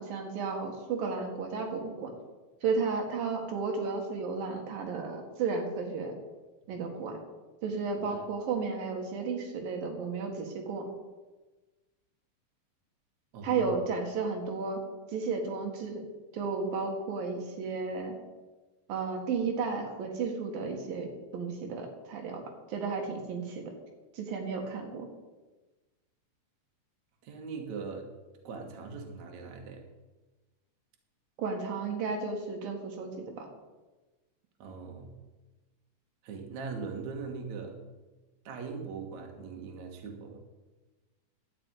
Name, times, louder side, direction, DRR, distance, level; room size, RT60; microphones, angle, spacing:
voice 1, 0.0-2.1 2.6-6.1 6.7-7.2 7.6-10.9 13.4-14.8 15.1-16.0 16.3-18.1 18.9-23.6 24.1-25.1 31.4-33.5, right 4 dB, 90° right, 2 dB, 3.5 m, -33 dB
voice 2, 13.3-13.8 27.2-28.1 28.4-29.8 34.6-35.2 36.2-37.8 38.4-40.4, right 4 dB, 60° right, 2 dB, 2.7 m, -40 dB
11.5 x 6.0 x 9.2 m, 1.2 s
omnidirectional pair, 3.9 m